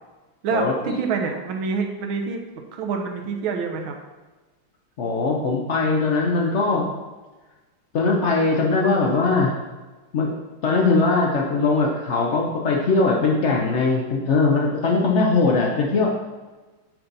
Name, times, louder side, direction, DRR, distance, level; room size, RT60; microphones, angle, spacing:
voice 1, 0.4-2.4 2.7-4.0, right 5 dB, 75° right, 3 dB, 1.6 m, -26 dB
voice 2, 5.0-6.9 7.9-9.5 10.1-10.4 10.6-16.1, left 3 dB, 90° left, -1 dB, 0.6 m, -20 dB
9.1 x 4.1 x 3.9 m, 1.2 s
omnidirectional pair, 2.3 m